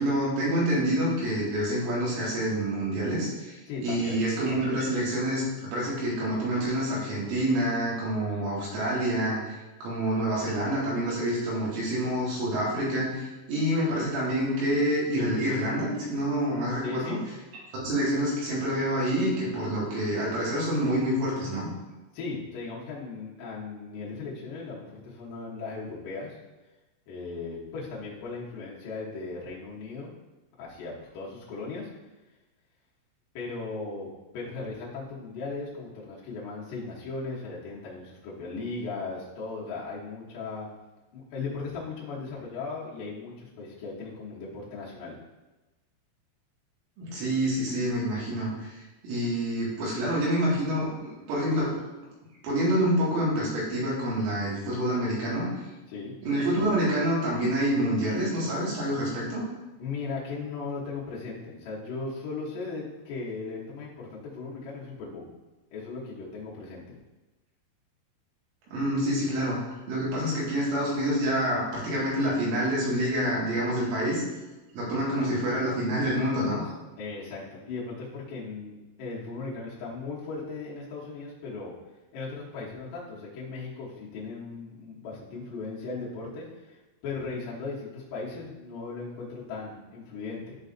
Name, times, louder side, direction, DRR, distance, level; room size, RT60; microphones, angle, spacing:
voice 1, 0.0-5.4 5.7-9.4 9.8-17.2 17.7-21.7 47.0-51.7 52.4-55.5 56.2-59.4 68.7-69.6 69.9-74.2 74.7-76.6, right 1 dB, 80° right, -6 dB, 4.4 m, -27 dB
voice 2, 3.7-4.2 16.8-17.2 22.1-26.4 27.1-30.1 30.6-31.9 33.3-40.7 41.1-45.1 55.9-56.1 59.8-65.2 65.7-67.0 77.0-81.7 82.1-90.6, left 4 dB, 75° left, -6 dB, 1.9 m, -37 dB
11.0 x 3.9 x 2.6 m, 1.1 s
omnidirectional pair, 5.5 m